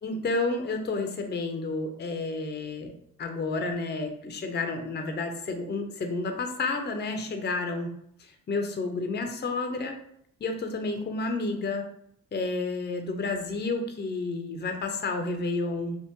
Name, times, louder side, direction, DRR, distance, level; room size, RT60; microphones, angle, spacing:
voice 1, 0.0-2.9 3.2-7.9 8.2-10.0 10.4-11.8 12.3-16.0, left 3 dB, 25° left, 4 dB, 0.6 m, -30 dB
3.4 x 2.1 x 3.0 m, 0.69 s
hypercardioid pair, 40°, 38 cm